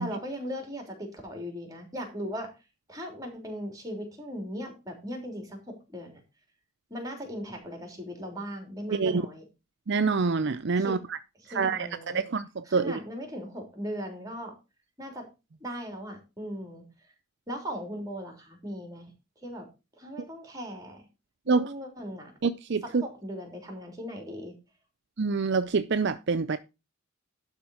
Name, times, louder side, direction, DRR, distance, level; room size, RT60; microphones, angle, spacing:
voice 1, 0.0-2.5 2.9-6.2 6.9-9.4 10.8-10.9 11.4-12.2 12.7-14.5 15.0-15.3 15.6-16.8 17.5-19.1 19.4-19.7 20.0-21.1 21.5-22.3 22.8-24.5, equal, 15° right, 3.4 m, -38 dB
voice 2, 8.9-9.2 9.9-11.2 11.5-11.9 12.1-13.0 21.5-21.7 22.4-23.0 25.2-26.6, right 4 dB, 55° right, 0.5 m, -26 dB
11.5 x 4.3 x 6.3 m
head